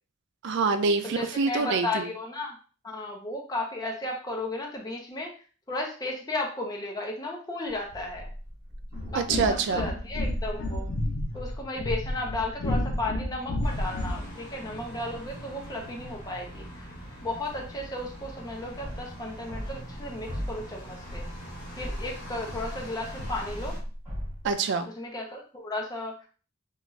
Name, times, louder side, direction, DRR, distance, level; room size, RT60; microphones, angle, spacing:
voice 1, 0.4-2.1 9.1-9.9 24.4-24.9, right 4 dB, 60° right, 9 dB, 0.3 m, -26 dB
voice 2, 1.0-2.5 2.8-5.3 5.7-8.3 9.1-10.9 11.3-16.8 17.2-21.3 21.8-23.8 25.0-26.3, left 2 dB, 20° left, 0 dB, 0.5 m, -34 dB
sound 1, 7.7-13.7 13.9-14.7 15.0-16.5 16.8-24.5, equal, 20° right, 1.4 m, -40 dB
sound 2, 8.9-14.3, left 1 dB, 75° left, 0.5 m, -31 dB
sound 3, 13.6-23.8, equal, 45° left, 1.2 m, -43 dB
2.4 x 2.3 x 3.1 m, 0.38 s
head